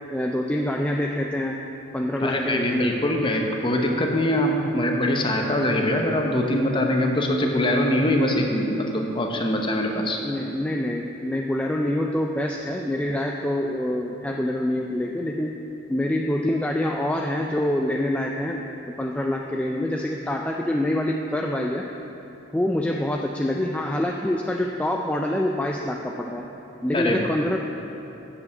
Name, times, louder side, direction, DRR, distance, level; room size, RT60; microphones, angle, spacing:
voice 1, 0.1-1.6 1.9-2.9 10.2-15.5 15.9-21.9 22.5-26.5 26.8-27.6, left 1 dB, 5° left, 0 dB, 0.3 m, -26 dB
voice 2, 2.2-10.2 26.9-27.3, left 1 dB, 25° left, 2 dB, 0.9 m, -23 dB
8.1 x 6.5 x 7.1 m, 3.0 s
head